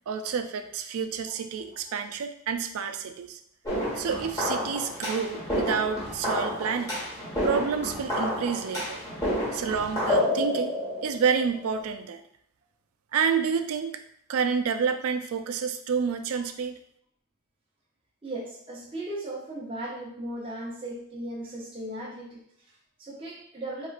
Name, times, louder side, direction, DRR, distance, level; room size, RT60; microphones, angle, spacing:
voice 1, 0.1-3.4 4.0-6.9 7.4-9.0 9.5-12.2 13.1-14.0 14.3-16.8, right 6 dB, 85° right, 8 dB, 0.3 m, -29 dB
sound 1, 3.6-11.8, left 1 dB, 15° left, 1.2 m, -30 dB
voice 2, 18.2-23.9, right 1 dB, 25° right, -5 dB, 0.7 m, -37 dB
4.2 x 2.4 x 2.4 m, 0.68 s
head